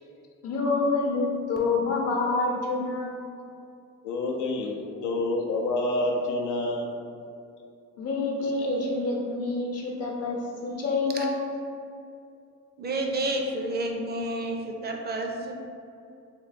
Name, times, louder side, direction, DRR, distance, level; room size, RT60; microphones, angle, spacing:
voice 1, 0.4-3.2 8.0-11.4, left 3 dB, 55° left, -1 dB, 0.8 m, -27 dB
voice 2, 4.0-4.7 5.0-6.9 8.4-8.7, left 2 dB, 90° left, 0 dB, 0.5 m, -28 dB
voice 3, 12.8-15.5, right 1 dB, 35° right, 2 dB, 0.4 m, -30 dB
3.1 x 2.2 x 4.1 m, 2.5 s
cardioid pair, 90°, 30 cm